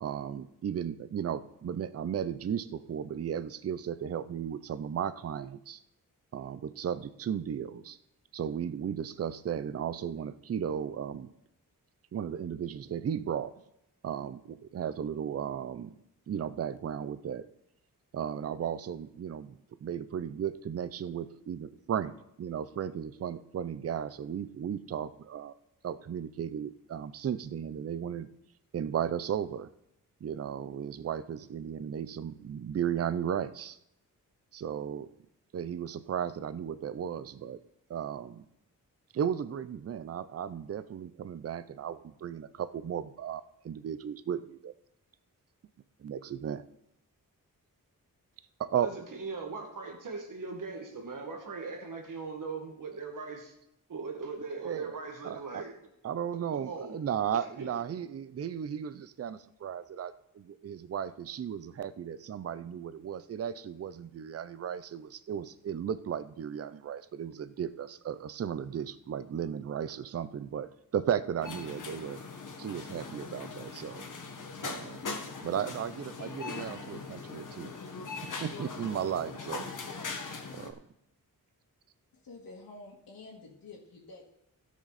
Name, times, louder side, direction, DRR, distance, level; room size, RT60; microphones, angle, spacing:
voice 1, 0.0-5.8 6.3-8.0 8.3-11.3 12.1-13.6 14.0-16.0 16.3-17.5 18.1-25.5 25.8-28.3 28.7-29.7 30.2-33.8 34.5-35.1 35.5-37.6 37.9-38.4 39.1-44.7 46.0-46.7 48.6-48.9 54.6-55.0 55.2-55.6 56.0-72.2 72.6-74.1 74.6-75.1 75.4-77.7 78.4-79.7 80.5-80.8, right 8 dB, 45° right, 15 dB, 0.5 m, -35 dB
voice 2, 48.7-53.5 53.9-55.7 56.5-57.0 57.6-57.7, right 4 dB, 65° right, 2 dB, 1.9 m, -39 dB
sound 1, 71.4-80.7, left 4 dB, 60° left, 1.5 m, -40 dB
voice 3, 82.2-84.3, left 3 dB, 80° left, -3 dB, 1.9 m, -49 dB
16.0 x 6.4 x 4.1 m, 0.81 s
wide cardioid pair, 125°, 35 cm